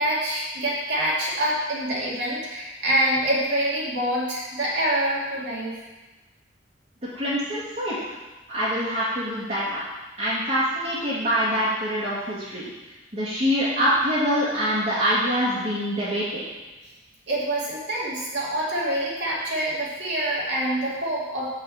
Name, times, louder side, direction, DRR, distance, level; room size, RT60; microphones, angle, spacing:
voice 1, 0.0-5.8 17.3-21.5, right 1 dB, 65° right, -6 dB, 2.5 m, -26 dB
voice 2, 7.1-8.2 8.5-9.8 10.2-12.7 13.1-16.4, equal, 35° right, -12 dB, 2.2 m, -25 dB
6.2 x 5.5 x 7.1 m, 1.1 s
head